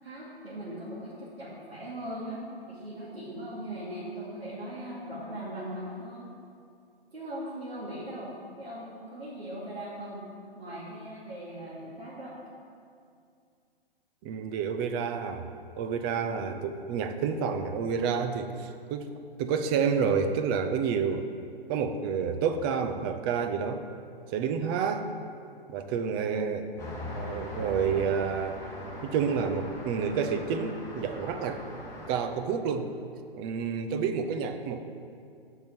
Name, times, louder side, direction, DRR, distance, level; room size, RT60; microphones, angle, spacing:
voice 1, 0.0-2.4 2.7-6.3 7.1-10.2 10.5-12.4, right 1 dB, 90° right, -10 dB, 2.8 m, -39 dB
voice 2, 14.2-15.5 15.8-19.1 19.4-21.3 21.7-23.8 24.3-25.1 25.7-26.7 27.1-28.6 29.0-31.6 32.1-32.9 33.3-34.8, right 6 dB, 25° right, 7 dB, 0.6 m, -29 dB
Traffic noise roadway noise, 26.8-32.2, left 1 dB, 10° left, 1.8 m, -40 dB
8.5 x 5.6 x 7.7 m, 2.4 s
figure-of-eight pair, 125°, 30 cm